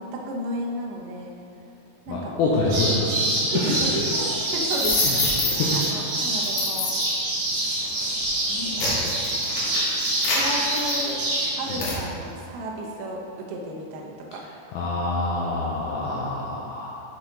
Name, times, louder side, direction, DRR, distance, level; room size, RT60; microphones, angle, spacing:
voice 1, 0.0-1.3 2.1-2.6 3.5-6.9 8.5-9.2 10.3-11.2 11.6-14.4, right 1 dB, 85° right, -1 dB, 1.9 m, -33 dB
voice 2, 2.1-3.2 3.6-3.7 5.0-5.2 5.6-5.9 11.7-11.8 14.7-16.9, left 2 dB, 85° left, -6 dB, 2.2 m, -26 dB
sound 1, 2.7-11.8, right 1 dB, 70° right, 1.5 m, -26 dB
sound 2, 4.7-5.9 6.4-7.2 7.8-8.0 8.5-11.3 11.8-12.0, left 3 dB, 65° left, 2.4 m, -27 dB
6.7 x 6.1 x 2.9 m, 2.6 s
omnidirectional pair, 4.9 m